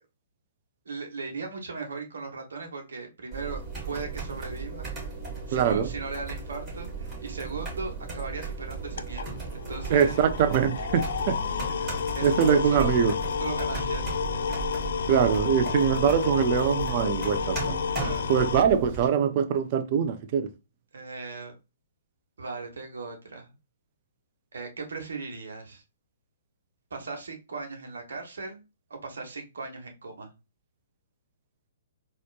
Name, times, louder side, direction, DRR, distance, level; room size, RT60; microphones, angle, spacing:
voice 1, 0.8-4.9 5.5-10.2 11.9-12.3 12.6-13.0 13.4-14.5 18.0-18.4 20.9-21.6 22.4-23.5 24.5-25.8 26.9-28.6 28.9-30.3, right 4 dB, 65° right, 1.3 m, -38 dB
sound 1, 3.3-19.1, right 4 dB, 20° right, 2.3 m, -36 dB
voice 2, 5.5-5.9 9.9-11.4 12.2-13.1 15.1-17.8 18.3-20.5, right 8 dB, 40° right, 0.6 m, -23 dB
sound 2, 8.7-18.6, left 7 dB, 60° left, 0.3 m, -31 dB
4.1 x 3.1 x 2.3 m
figure-of-eight pair, 125°, 0 cm